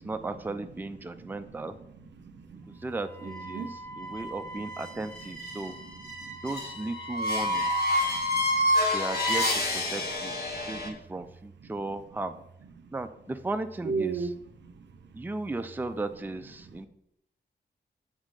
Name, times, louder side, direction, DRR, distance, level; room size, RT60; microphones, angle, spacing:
voice 1, 0.0-1.7 2.8-5.8 6.4-7.9 8.9-12.3 12.9-14.3 15.1-16.9, right 2 dB, 10° right, 8 dB, 0.4 m, -36 dB
voice 2, 1.1-1.6 2.0-2.8 3.2-4.1 4.9-6.4 7.4-7.5 8.0-8.7 10.0-11.0 11.6-11.7 12.8-12.9 13.8-15.1 16.6-16.9, right 4 dB, 80° right, 8 dB, 0.6 m, -39 dB
sound 1, 3.2-10.9, left 1 dB, 60° left, 1.3 m, -29 dB
7.3 x 4.1 x 4.8 m, 0.75 s
wide cardioid pair, 80°, 18 cm